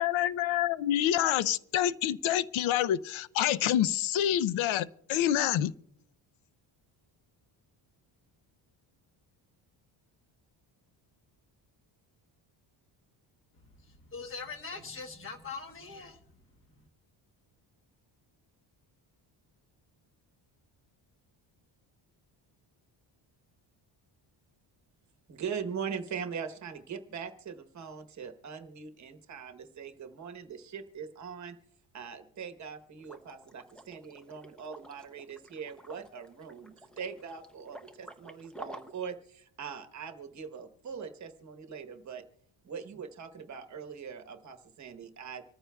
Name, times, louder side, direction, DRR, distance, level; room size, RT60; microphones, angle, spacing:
voice 1, 0.0-5.7, left 11 dB, 90° left, 0.6 m, -27 dB
voice 2, 14.1-16.2, left 4 dB, 25° left, 1.1 m, -41 dB
voice 3, 25.3-31.6 31.9-42.2 42.6-45.4, right 6 dB, 35° right, 1.0 m, -41 dB
Liquid, 33.0-39.1, right 1 dB, ahead, 0.5 m, -50 dB
26.0 x 14.0 x 2.2 m
cardioid pair, 175°, 46 cm